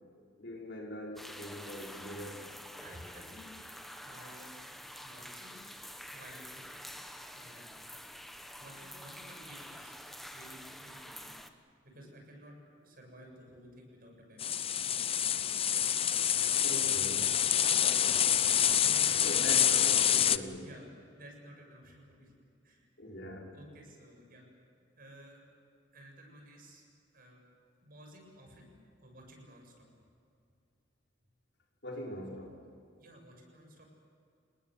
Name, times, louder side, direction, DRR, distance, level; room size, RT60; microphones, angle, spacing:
voice 1, 0.4-2.5 16.6-17.2 19.2-20.7 23.0-23.5 31.8-32.6, equal, 65° left, -2 dB, 5.9 m, -42 dB
sound 1, 1.2-11.5, equal, ahead, 1.3 m, -47 dB
voice 2, 2.8-3.7 4.0-4.5 5.0-5.6 6.1-6.7 7.3-7.7 8.6-10.0 10.3-11.3 11.8-15.3 17.0-17.4 18.7-19.1 20.6-20.9 21.1-22.3 22.6-22.9 23.5-24.4 25.0-25.4 25.9-26.8 27.1-27.4 27.8-28.7 29.0-29.9 33.0-33.8, equal, 50° right, 1 dB, 7.3 m, -54 dB
sound 2, 14.4-20.4, left 9 dB, 30° left, 0.7 m, -27 dB
29.5 x 20.0 x 7.9 m, 2.4 s
head